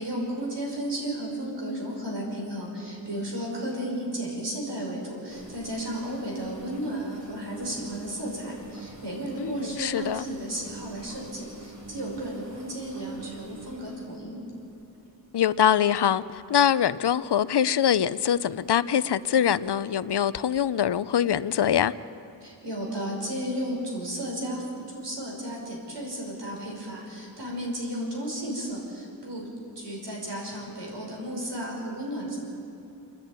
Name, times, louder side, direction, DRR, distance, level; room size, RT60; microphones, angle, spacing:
voice 1, 0.0-14.4 22.4-29.5 29.8-32.4, right 1 dB, 85° right, -2 dB, 5.5 m, -33 dB
sound 1, 5.3-15.5 16.1-16.4 16.9-17.1 17.9-18.3 18.6-18.7 19.6-19.7, right 3 dB, 40° right, 3.6 m, -46 dB
voice 2, 9.4-10.3 15.3-21.9, left 9 dB, 75° left, 16 dB, 0.6 m, -24 dB
28.0 x 10.5 x 9.4 m, 2.9 s
wide cardioid pair, 80°, 41 cm